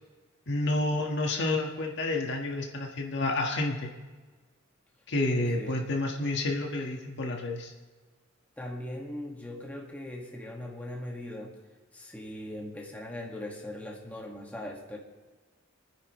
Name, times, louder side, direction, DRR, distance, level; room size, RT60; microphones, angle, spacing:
voice 1, 0.5-3.9 5.1-7.7, left 2 dB, 60° left, 1 dB, 1.6 m, -29 dB
voice 2, 5.3-5.7 8.6-11.6 11.9-15.0, left 1 dB, 5° left, -2 dB, 1.9 m, -40 dB
28.5 x 9.9 x 3.2 m, 1.3 s
head